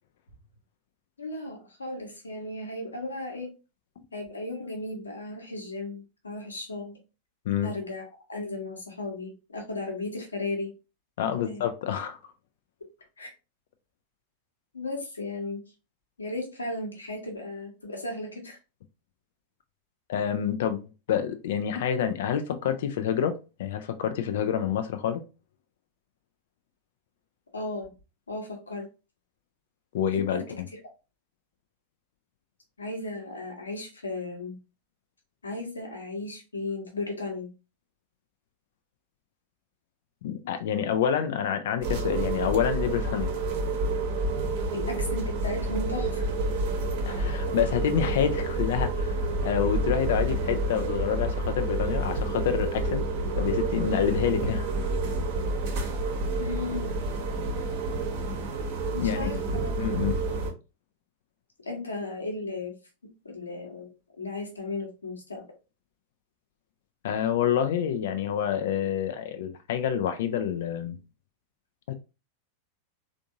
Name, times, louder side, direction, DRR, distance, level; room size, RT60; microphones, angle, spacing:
voice 1, 1.2-3.5 4.1-7.0 7.6-10.7 11.4-11.6 13.2-13.3 14.7-15.6 16.2-18.6 27.5-27.9 28.3-28.9 30.3-30.6 32.8-34.6 35.4-37.5 44.7-46.3 56.4-56.9 58.9-59.7 61.6-62.7 63.2-65.4, left 2 dB, 75° left, 1.1 m, -35 dB
voice 2, 11.2-12.2 20.1-25.2 29.9-30.4 40.2-43.3 47.1-53.0 53.4-54.7 59.0-59.3 59.8-60.1 67.0-71.0 71.9-72.0, left 9 dB, 55° left, 0.3 m, -28 dB
sound 1, 41.8-60.5, right 2 dB, 45° right, 0.9 m, -29 dB
3.4 x 2.6 x 2.5 m
figure-of-eight pair, 90°, 0 cm